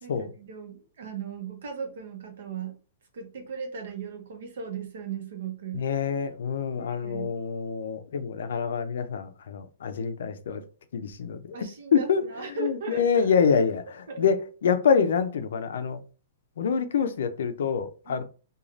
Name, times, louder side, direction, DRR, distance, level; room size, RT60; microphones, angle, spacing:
voice 1, 0.0-2.8 3.1-5.8 6.7-7.3 11.5-13.3 14.1-14.3 18.0-18.2, right 6 dB, 65° right, 0.8 m, -37 dB
voice 2, 5.7-10.6 10.9-11.6 11.9-12.2 12.6-16.0 16.6-18.2, left 6 dB, 75° left, 0.4 m, -26 dB
3.1 x 2.3 x 2.5 m
hypercardioid pair, 170°, 0 cm